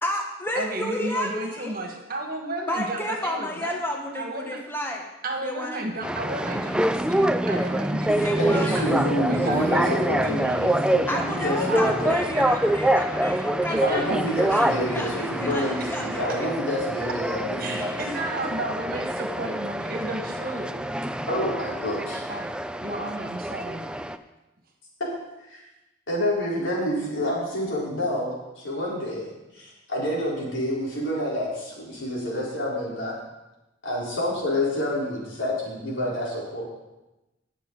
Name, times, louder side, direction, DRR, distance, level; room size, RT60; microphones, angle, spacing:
voice 1, 0.0-1.7 2.7-5.1 5.4-5.9 8.0-8.8 11.1-16.5, left 1 dB, 10° left, 1 dB, 1.3 m, -31 dB
voice 2, 0.6-3.7 4.2-4.6 5.2-10.9 11.3-11.8 12.1-12.6 13.7-14.2 15.8-15.9 17.6-20.7 22.3-22.5 22.8-23.9, right 1 dB, 50° right, 2 dB, 1.8 m, -33 dB
sound 1, 6.0-24.2, right 1 dB, 5° right, 0.4 m, -26 dB
voice 3, 8.4-12.2 13.8-17.9 21.3-22.2 26.1-29.3 29.5-33.2 33.8-36.6, equal, 90° left, -5 dB, 4.2 m, -28 dB
18.0 x 7.1 x 4.0 m, 1.0 s
head